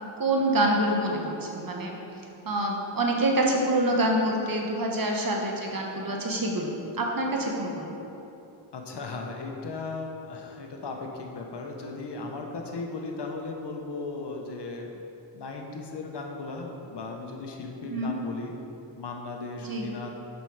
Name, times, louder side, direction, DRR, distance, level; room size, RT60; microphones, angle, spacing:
voice 1, 0.2-2.0 2.4-8.0 17.9-18.1 19.6-19.9, right 1 dB, 45° right, 0 dB, 1.3 m, -26 dB
voice 2, 8.7-15.0 15.3-18.5 19.0-20.1, left 3 dB, 60° left, 1 dB, 1.0 m, -36 dB
6.8 x 5.8 x 4.8 m, 2.9 s
cardioid pair, 65°, 47 cm